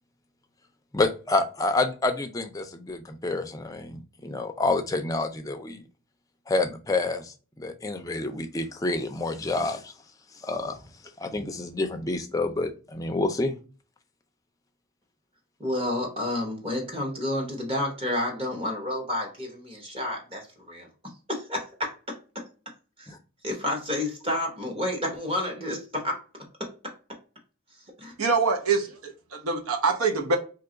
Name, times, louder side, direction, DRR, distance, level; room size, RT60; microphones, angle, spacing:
voice 1, 0.9-5.8 6.5-9.9 10.3-10.8 11.2-13.6 23.1-23.2, left 2 dB, 15° left, 0.4 m, -28 dB
voice 2, 15.6-20.9 21.3-22.5 23.0-23.1 23.4-26.2 26.6-26.9 28.0-28.1, left 1 dB, 25° right, 0.8 m, -30 dB
voice 3, 28.2-30.4, right 4 dB, 85° right, 0.7 m, -25 dB
2.8 x 2.3 x 3.7 m
head